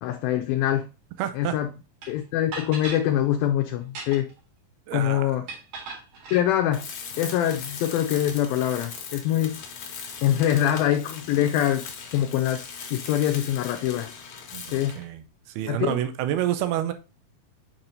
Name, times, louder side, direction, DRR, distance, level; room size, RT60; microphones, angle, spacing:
voice 1, 0.0-0.9 1.3-1.7 2.1-4.3 4.9-5.4 6.3-6.9 7.2-9.6 10.2-12.6 12.9-14.1 14.6-15.0 15.7-16.0, left 11 dB, 80° left, 2.3 m, -24 dB
voice 2, 1.2-1.6 4.9-5.4 14.5-15.2 15.5-16.9, right 11 dB, 85° right, 2.6 m, -28 dB
sound 1, 2.0-2.1 2.5-3.0 3.8-4.4 5.5-6.4, right 4 dB, 65° right, 3.6 m, -37 dB
Tools, 6.7-15.1, left 6 dB, 60° left, 2.4 m, -39 dB
6.7 x 5.8 x 2.6 m
omnidirectional pair, 4.4 m